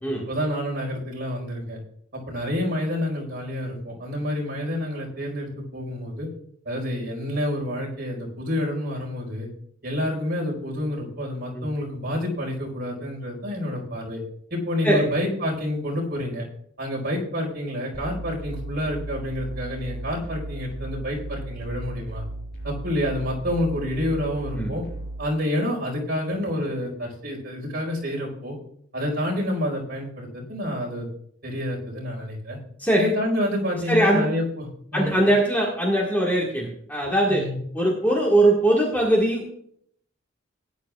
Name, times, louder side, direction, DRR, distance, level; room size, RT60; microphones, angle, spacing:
voice 1, 0.1-1.8 2.1-6.3 6.6-9.5 9.8-14.2 14.5-16.4 16.8-22.2 22.6-24.8 25.2-28.6 28.9-31.1 31.4-32.6 32.9-35.1 37.3-37.6, left 1 dB, 50° right, -1 dB, 4.7 m, -28 dB
sound 1, 17.9-25.3, right 2 dB, 55° left, 4.7 m, -36 dB
voice 2, 33.9-34.3 34.9-37.5 37.7-39.4, right 1 dB, 10° left, -4 dB, 1.8 m, -21 dB
18.5 x 10.5 x 2.4 m, 0.67 s
head